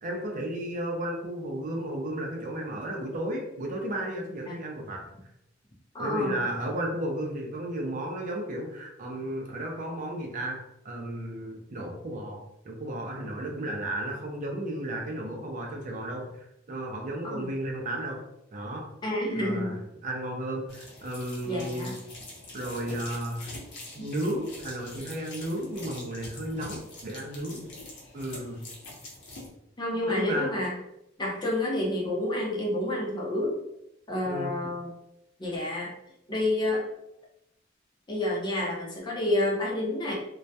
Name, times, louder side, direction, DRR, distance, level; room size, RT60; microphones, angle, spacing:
voice 1, 0.0-5.1 6.0-18.2 18.5-18.9 19.3-21.9 22.5-23.6 23.9-27.7 28.1-28.6 30.1-30.6 34.2-34.5, right 1 dB, 45° right, 1 dB, 0.4 m, -34 dB
voice 2, 5.9-6.4 17.2-17.5 19.0-19.8 21.5-21.9 29.8-30.7 31.2-33.6 34.1-35.0 35.4-35.9 36.3-36.8 38.1-40.1, left 1 dB, 25° left, -2 dB, 0.5 m, -29 dB
sound 1, 20.7-29.5, left 2 dB, 60° left, 0.7 m, -44 dB
2.2 x 2.1 x 2.7 m, 0.82 s
head